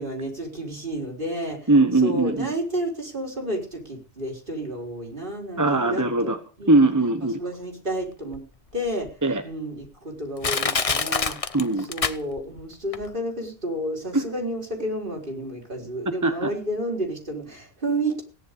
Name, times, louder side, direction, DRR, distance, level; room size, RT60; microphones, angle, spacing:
voice 1, 0.0-1.7 2.0-6.3 6.6-6.8 7.2-8.4 8.7-9.1 9.4-11.4 11.9-18.2, right 1 dB, 55° right, 2 dB, 4.4 m, -31 dB
voice 2, 1.7-2.5 5.6-6.4 6.7-7.4 9.2-9.4 11.5-11.9 14.1-14.2 16.2-16.5, right 2 dB, 15° right, 7 dB, 1.3 m, -20 dB
Crushing, 8.3-8.4 9.1-9.2 9.8-9.9 10.4-12.6 12.9-13.0, left 5 dB, 35° left, 0.9 m, -25 dB
17.0 x 10.5 x 6.8 m, 0.39 s
omnidirectional pair, 1.1 m